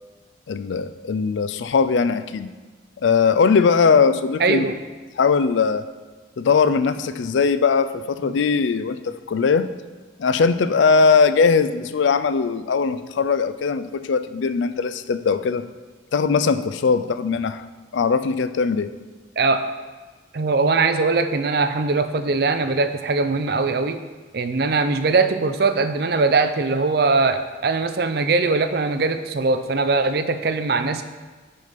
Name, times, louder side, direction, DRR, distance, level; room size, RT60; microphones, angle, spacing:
voice 1, 0.5-2.5 3.0-4.7 5.2-5.9 6.4-9.7 10.2-15.6 16.1-17.6 17.9-18.9, left 5 dB, 75° left, 12 dB, 0.4 m, -20 dB
voice 2, 4.4-4.8 8.2-8.4 19.4-19.6 20.3-24.0 24.3-31.0, right 3 dB, 55° right, 10 dB, 0.5 m, -21 dB
6.3 x 5.8 x 5.2 m, 1.3 s
head